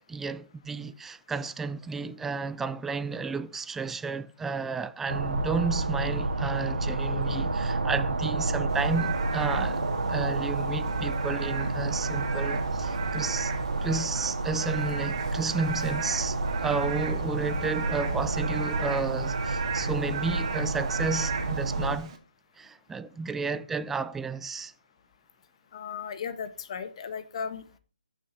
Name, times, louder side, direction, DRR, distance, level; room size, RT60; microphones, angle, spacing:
voice 1, 0.1-9.8 10.1-13.5 13.8-22.1 22.6-24.7, right 4 dB, 5° right, 0.4 m, -32 dB
sound 1, 5.1-22.0, right 2 dB, 75° right, 2.2 m, -29 dB
Frog / Rain, 8.7-22.2, right 6 dB, 35° right, 2.3 m, -39 dB
voice 2, 25.7-27.8, left 6 dB, 40° left, 1.5 m, -36 dB
14.5 x 6.4 x 4.2 m
hypercardioid pair, 155°, 5 cm